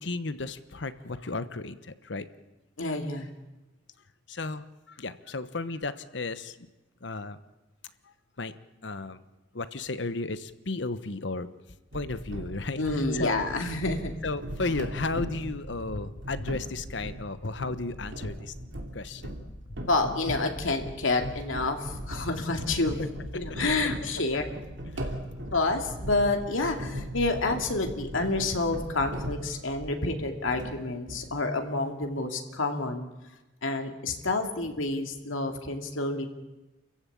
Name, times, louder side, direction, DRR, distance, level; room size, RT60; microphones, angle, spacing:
voice 1, 0.0-2.3 4.3-6.6 7.0-7.4 8.4-8.5 8.8-9.2 9.5-11.5 11.9-12.8 13.1-13.4 14.2-18.5 18.9-19.3 23.0-23.1 24.9-25.1, left 3 dB, 65° left, 13 dB, 1.1 m, -34 dB
voice 2, 2.8-3.3 12.8-14.2 19.9-23.0 23.3-24.4 25.5-33.1 33.6-36.3, left 2 dB, 90° left, 4 dB, 2.5 m, -29 dB
sound 1, 11.9-30.1 30.4-31.4, equal, 70° right, 2.9 m, -38 dB
28.0 x 15.0 x 8.6 m, 1.1 s
head